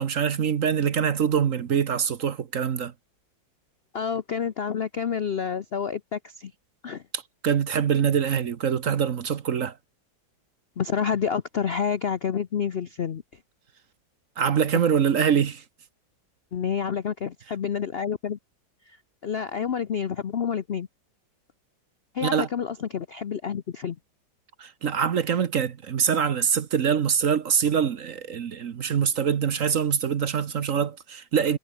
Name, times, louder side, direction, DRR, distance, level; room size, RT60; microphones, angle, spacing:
voice 1, 0.0-2.9 7.1-9.8 14.4-15.6 22.2-22.5 24.6-31.6, right 7 dB, 50° right, 1.2 m, -24 dB
voice 2, 3.9-6.5 6.8-7.0 10.8-13.2 14.7-14.8 16.5-18.4 18.9-19.0 19.2-20.9 22.1-24.0, left 7 dB, 55° left, 0.6 m, -28 dB
omnidirectional pair, 2.0 m